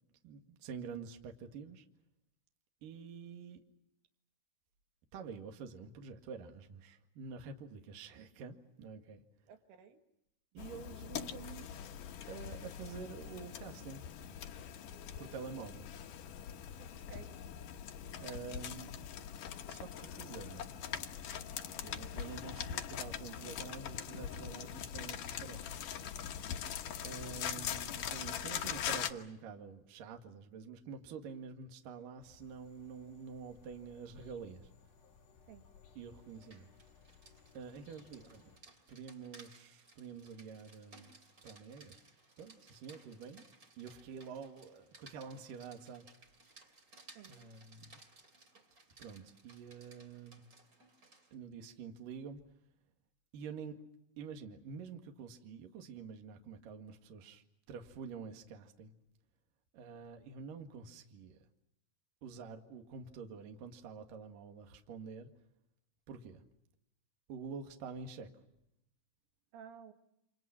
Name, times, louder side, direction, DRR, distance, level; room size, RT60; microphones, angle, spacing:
voice 1, 0.2-1.9 2.8-3.6 5.1-9.2 10.5-11.7 12.3-14.0 15.2-15.9 18.2-19.0 19.7-20.7 21.8-25.6 27.0-34.7 36.0-36.7 37.5-38.5 38.9-41.1 41.4-42.0 42.4-43.4 43.8-46.1 47.3-48.0 49.0-50.5 51.3-52.4 53.3-53.8 54.2-58.9 59.7-61.4 62.2-65.3 66.1-66.4 67.3-68.3, right 5 dB, 55° right, 5 dB, 3.0 m, -48 dB
voice 2, 9.5-10.0 16.8-17.4 35.4-35.6 47.2-47.4 69.5-69.9, right 7 dB, 85° right, 6 dB, 4.4 m, -54 dB
sound 1, 10.6-29.1, left 9 dB, 70° left, 2.0 m, -42 dB
sound 2, 32.2-38.6, left 6 dB, 45° left, 4.4 m, -62 dB
Rain, 36.2-51.3, right 2 dB, 25° right, 2.6 m, -61 dB
29.5 x 27.0 x 5.9 m, 0.81 s
omnidirectional pair, 5.6 m